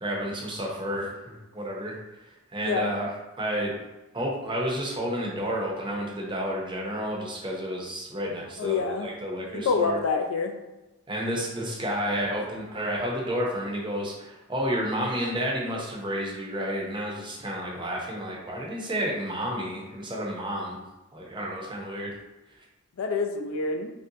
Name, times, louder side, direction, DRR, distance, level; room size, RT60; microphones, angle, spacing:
voice 1, 0.0-2.0 2.5-3.1 3.4-3.7 4.1-10.0 11.1-20.8 21.1-22.1, equal, 25° right, -2 dB, 0.6 m, -31 dB
voice 2, 2.6-2.9 8.6-9.1 9.5-10.6 23.0-23.9, left 4 dB, 75° left, 4 dB, 0.4 m, -27 dB
3.2 x 2.6 x 2.7 m, 1.0 s
head